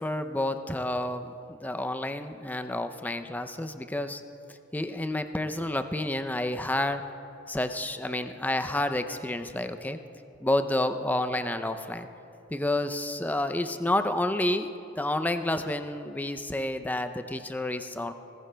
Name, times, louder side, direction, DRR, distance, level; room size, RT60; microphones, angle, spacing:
voice 1, 0.0-4.2 4.7-7.0 7.5-10.0 10.4-12.1 12.5-14.7 15.0-18.1, left 1 dB, 10° left, 8 dB, 0.5 m, -29 dB
27.5 x 15.0 x 2.3 m, 2.7 s
head